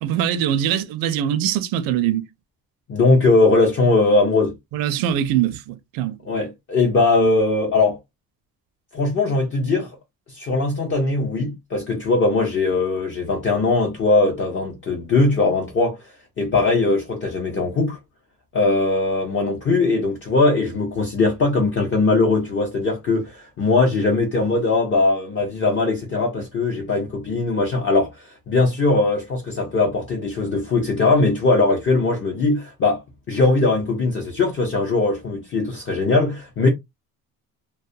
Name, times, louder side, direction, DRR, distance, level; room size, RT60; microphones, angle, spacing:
voice 1, 0.0-2.3 4.7-6.2, right 10 dB, 85° right, 0.5 m, -22 dB
voice 2, 2.9-4.5 6.3-8.0 8.9-9.9 10.3-16.0 16.4-18.0 18.5-28.1 28.5-33.0 33.3-36.7, left 3 dB, 35° left, 0.7 m, -20 dB
2.3 x 2.1 x 2.6 m
cardioid pair, 135°, 34 cm